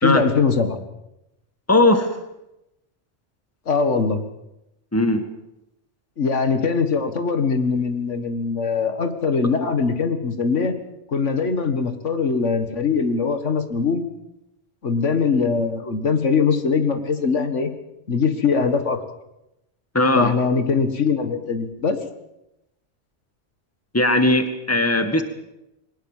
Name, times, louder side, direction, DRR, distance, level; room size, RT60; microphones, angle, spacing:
voice 1, 0.0-0.8 3.7-4.2 6.2-10.8 11.1-14.0 14.8-17.7 18.1-19.0 20.2-22.0, left 5 dB, 80° left, 8 dB, 2.1 m, -21 dB
voice 2, 1.7-2.1 4.9-5.2 19.9-20.3 23.9-25.2, left 2 dB, 10° left, 8 dB, 1.9 m, -18 dB
21.5 x 19.5 x 7.4 m, 0.88 s
omnidirectional pair, 1.2 m